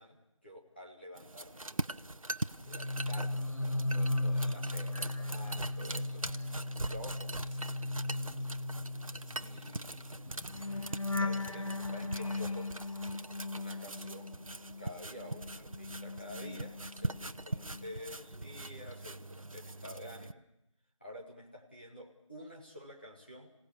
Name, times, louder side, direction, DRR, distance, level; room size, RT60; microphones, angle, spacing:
voice 1, 0.0-1.7 2.5-6.3 6.9-7.8 9.4-10.2 11.1-12.7 13.5-14.4 14.8-20.4 21.0-23.5, left 1 dB, 20° left, -4 dB, 2.0 m, -49 dB
sound 1, 1.1-20.3, right 2 dB, 80° right, 0.9 m, -42 dB
sound 2, 2.6-14.9 15.2-17.3 17.6-17.9, left 2 dB, 70° left, 1.8 m, -37 dB
26.5 x 17.5 x 7.0 m, 0.84 s
figure-of-eight pair, 180°, 17 cm